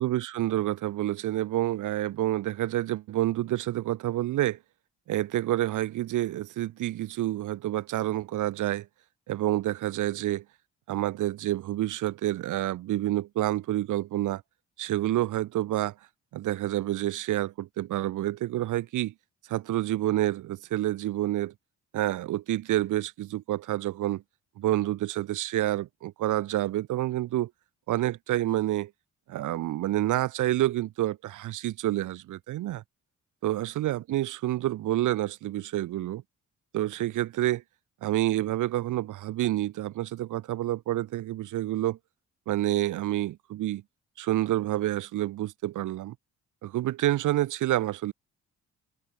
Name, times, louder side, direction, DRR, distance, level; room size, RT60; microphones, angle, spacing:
voice 1, 0.0-4.6 5.1-8.9 9.3-10.4 10.9-14.4 14.8-15.9 16.3-19.1 19.5-21.5 21.9-24.2 24.6-27.5 27.9-28.9 29.3-32.8 33.4-36.2 36.7-37.6 38.0-42.0 42.5-43.8 44.2-46.1 46.6-48.1, right 14 dB, 80° right, 2.4 m, -28 dB
cardioid pair, 90°, 30 cm